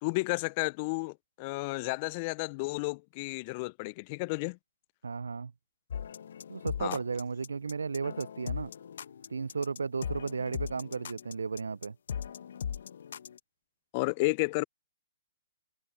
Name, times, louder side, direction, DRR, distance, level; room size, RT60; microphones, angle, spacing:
voice 1, 0.0-4.6 6.8-7.0 13.9-14.6, left 27 dB, 40° left, 0.3 m, -32 dB
voice 2, 5.0-5.5 6.5-8.7 9.3-12.0, right 5 dB, 85° right, 0.3 m, -34 dB
sound 1, 5.9-13.4, left 8 dB, 70° left, 0.8 m, -39 dB
hypercardioid pair, 130°, 0 cm